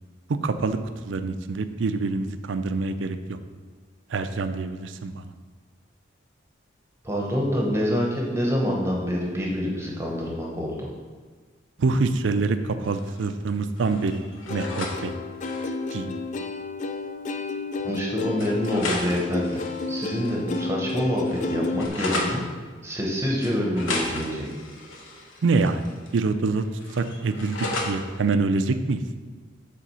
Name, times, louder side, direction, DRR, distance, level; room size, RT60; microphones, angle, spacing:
voice 1, 0.4-0.8 1.0-3.4 4.1-5.3 11.8-14.2 14.5-15.1 15.9-16.2 25.4-25.9 26.1-26.6 26.9-29.0, right 3 dB, 70° right, 9 dB, 0.4 m, -25 dB
voice 2, 7.0-10.9 17.8-19.6 19.9-22.5 22.8-24.5, equal, 15° right, -2 dB, 0.9 m, -26 dB
sound 1, 12.8-13.5 13.8-15.0 15.3-15.7 16.9-17.0 17.3-17.4 18.4-20.6 20.9-22.4 23.4-26.2 26.5-27.9, left 2 dB, 85° left, 1.1 m, -34 dB
Plucked string instrument, 14.5-21.9, left 3 dB, 40° left, 0.3 m, -31 dB
7.5 x 3.7 x 5.6 m, 1.5 s
head